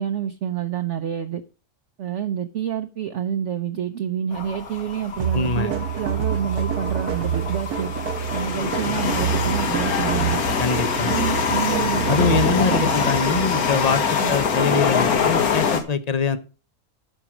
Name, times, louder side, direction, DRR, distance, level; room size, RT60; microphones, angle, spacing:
voice 1, 0.0-1.4 2.0-7.9 8.3-10.4 11.0-12.8 13.3-13.4 14.2-14.3, right 9 dB, 60° right, 0.9 m, -28 dB
sound 1, 4.3-15.8, left 5 dB, 75° left, 1.8 m, -24 dB
sound 2, 5.2-13.6, right 9 dB, 90° right, 1.4 m, -27 dB
voice 2, 5.3-5.7 10.6-11.2 12.1-14.0 14.3-16.4, left 5 dB, 40° left, 0.6 m, -23 dB
10.0 x 6.3 x 5.9 m
omnidirectional pair, 1.6 m